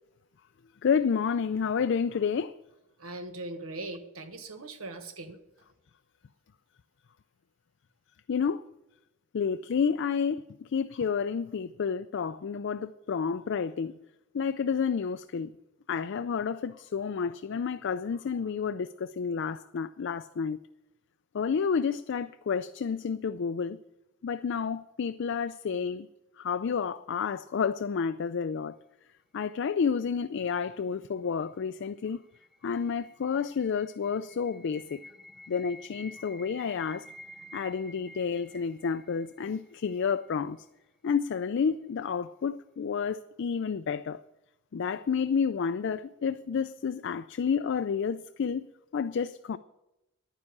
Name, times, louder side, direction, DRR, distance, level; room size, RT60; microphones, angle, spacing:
voice 1, 0.8-2.5 8.3-8.6 9.3-10.4 10.7-13.9 14.3-15.5 15.9-20.6 21.3-23.8 24.2-26.1 26.4-28.8 29.3-32.2 32.6-35.0 35.5-37.0 37.5-40.6 41.0-44.2 44.7-48.7 48.9-49.6, left 6 dB, 60° left, 0.4 m, -30 dB
voice 2, 3.0-5.4, right 2 dB, 90° right, 1.4 m, -40 dB
sound 1, 31.6-40.6, equal, ahead, 0.8 m, -51 dB
11.0 x 9.9 x 7.2 m
head